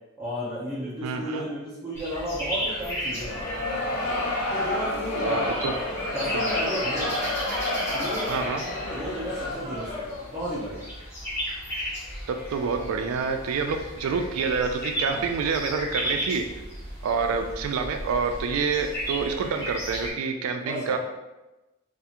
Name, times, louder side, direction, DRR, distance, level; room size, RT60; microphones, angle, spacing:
voice 1, 0.2-3.6 4.5-7.3 7.9-10.8 15.1-15.2 20.6-21.0, equal, 10° right, -10 dB, 0.4 m, -33 dB
voice 2, 1.0-1.5 5.1-5.7 8.3-8.6 12.3-16.4 17.0-21.0, right 5 dB, 80° right, 6 dB, 0.3 m, -27 dB
sound 1, 1.9-20.1, equal, 10° left, 0.8 m, -35 dB
sound 2, 3.1-10.3, left 1 dB, 45° left, 0.6 m, -30 dB
2.4 x 2.3 x 2.8 m, 1.1 s
head